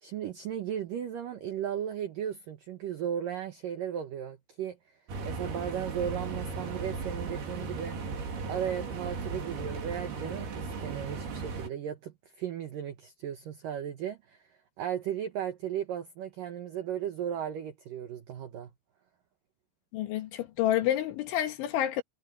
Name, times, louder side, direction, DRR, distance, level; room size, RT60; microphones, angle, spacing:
voice 1, 0.0-4.8 5.2-8.2 8.5-14.4 14.8-18.7, right 9 dB, 80° right, 2.0 m, -36 dB
sound 1, 5.1-11.7, right 4 dB, 55° right, 5.5 m, -36 dB
voice 2, 19.9-22.0, left 12 dB, 75° left, 3.9 m, -29 dB
omnidirectional pair, 5.7 m